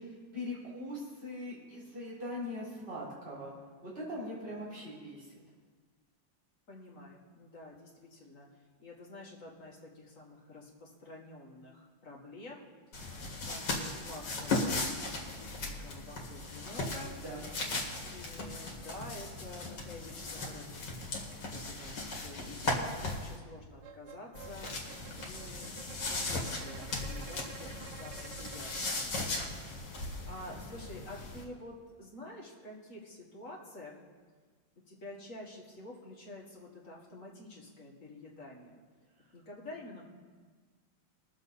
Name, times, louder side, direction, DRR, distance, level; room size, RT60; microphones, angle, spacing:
voice 1, 0.0-3.5 3.8-5.3 17.1-17.4, left 1 dB, 30° right, -8 dB, 4.3 m, -41 dB
voice 2, 6.7-8.5 8.8-12.7 13.5-17.2 18.1-24.8 25.1-29.1 30.3-34.0 34.9-38.8 39.3-40.1, left 2 dB, 40° left, -3 dB, 2.2 m, -49 dB
sound 1, 12.9-23.4 24.3-31.4, left 2 dB, 60° left, 2.4 m, -37 dB
sound 2, 23.8-29.1, right 8 dB, 70° right, 1.2 m, -51 dB
21.5 x 7.3 x 4.2 m, 1.5 s
omnidirectional pair, 2.1 m